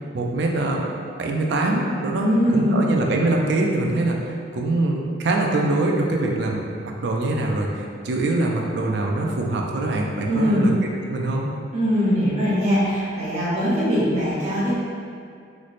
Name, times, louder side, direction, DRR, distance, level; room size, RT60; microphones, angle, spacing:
voice 1, 0.1-0.8 1.2-4.2 4.5-10.7 11.1-11.5, right 2 dB, 65° right, 0 dB, 0.4 m, -23 dB
voice 2, 2.1-2.8 10.3-10.7 11.7-14.7, equal, 35° right, -10 dB, 0.8 m, -21 dB
3.1 x 2.0 x 4.0 m, 2.3 s
head